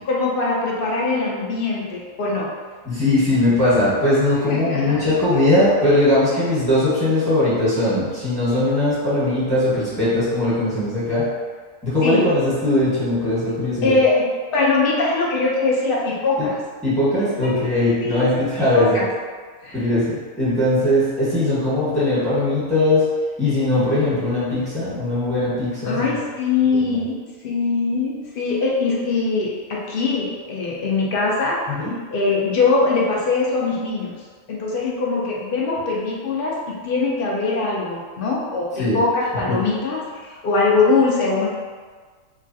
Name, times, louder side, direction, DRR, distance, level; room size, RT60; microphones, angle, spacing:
voice 1, 0.1-2.5 4.5-5.0 6.4-6.5 12.0-12.3 13.8-14.2 14.5-16.6 18.0-18.3 18.6-19.1 19.6-19.8 25.8-27.2 27.4-31.6 32.1-34.1 34.5-41.5, left 3 dB, 65° left, -4 dB, 0.5 m, -22 dB
voice 2, 2.8-11.3 11.8-14.0 16.8-19.0 19.7-23.1 23.4-26.2 26.8-27.0 31.7-31.9 38.8-39.0, left 1 dB, 5° left, -12 dB, 1.1 m, -20 dB
3.0 x 2.4 x 2.6 m, 1.5 s
omnidirectional pair, 1.4 m